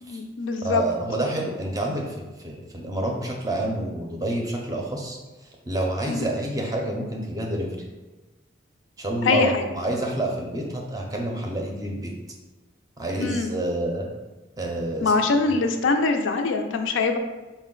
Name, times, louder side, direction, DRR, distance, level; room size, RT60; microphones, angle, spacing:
voice 1, 0.0-0.8 6.1-6.3 9.2-9.6 13.2-13.5 15.0-17.2, left 3 dB, 75° left, 5 dB, 0.4 m, -23 dB
voice 2, 0.6-5.2 5.7-7.8 9.0-12.1 13.0-14.1 14.6-15.1, right 1 dB, 20° right, 0 dB, 0.5 m, -28 dB
5.1 x 2.1 x 3.7 m, 1.1 s
head